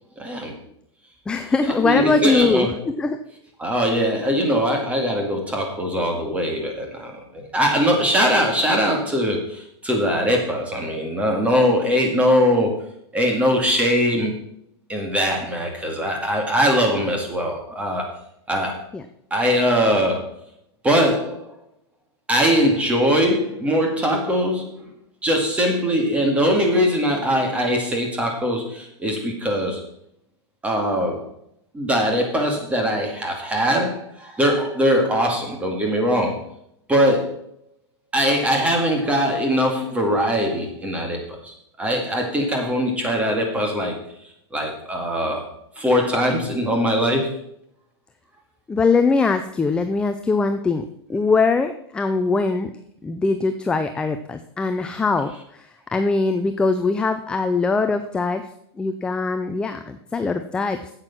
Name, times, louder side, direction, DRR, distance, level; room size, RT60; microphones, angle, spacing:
voice 1, 0.2-0.5 1.6-2.7 3.6-12.9 13.1-14.3 14.9-18.1 18.5-18.8 19.3-20.3 20.8-21.6 22.3-24.9 25.2-29.8 30.6-31.3 31.7-36.4 36.9-37.4 38.1-44.0 44.5-45.4 45.8-47.4, equal, 10° right, 1 dB, 2.1 m, -21 dB
voice 2, 1.3-3.2 18.9-19.0 48.7-52.7 53.0-58.5 58.8-60.9, left 4 dB, 5° left, 8 dB, 0.4 m, -22 dB
8.9 x 8.0 x 5.9 m, 0.72 s
supercardioid pair, 150°, 14 cm